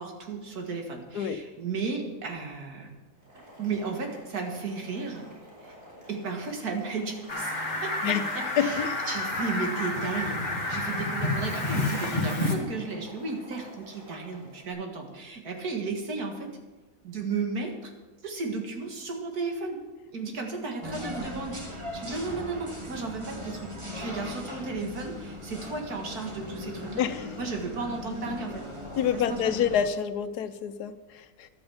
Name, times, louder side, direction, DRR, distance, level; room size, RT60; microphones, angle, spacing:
voice 1, 0.0-2.9 3.6-5.2 5.6-5.7 6.1-7.5 7.8-16.5 17.0-17.9 18.2-19.8 20.1-27.0 27.4-28.7 29.1-29.7, right 4 dB, 75° right, 2 dB, 2.3 m, -34 dB
Boiling, 3.1-14.7, equal, 55° right, 5.3 m, -50 dB
Fowl, 7.3-12.5, left 2 dB, 30° left, 1.9 m, -29 dB
voice 2, 8.6-9.0 27.0-27.3 29.0-31.5, left 8 dB, 90° left, 11 dB, 1.3 m, -27 dB
sound 1, 20.8-29.9, left 1 dB, 20° right, 1.6 m, -39 dB
12.0 x 8.7 x 7.1 m, 1.2 s
omnidirectional pair, 1.6 m